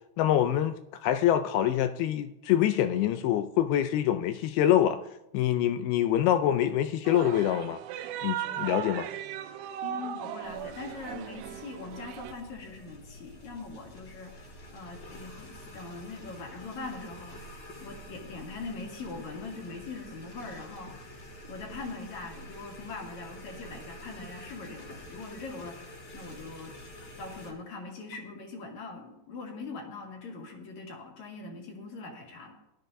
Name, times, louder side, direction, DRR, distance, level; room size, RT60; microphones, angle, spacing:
voice 1, 0.2-5.0 5.3-7.8 8.2-9.1, left 11 dB, 85° left, 2.2 m, -25 dB
sound 1, 7.1-12.3, right 11 dB, 80° right, 2.8 m, -37 dB
voice 2, 9.8-21.1 21.4-26.7 27.2-32.5, left 3 dB, 50° left, 2.7 m, -42 dB
sound 2, 10.4-27.5, equal, 35° left, 1.9 m, -47 dB
19.0 x 12.5 x 2.7 m
omnidirectional pair, 4.9 m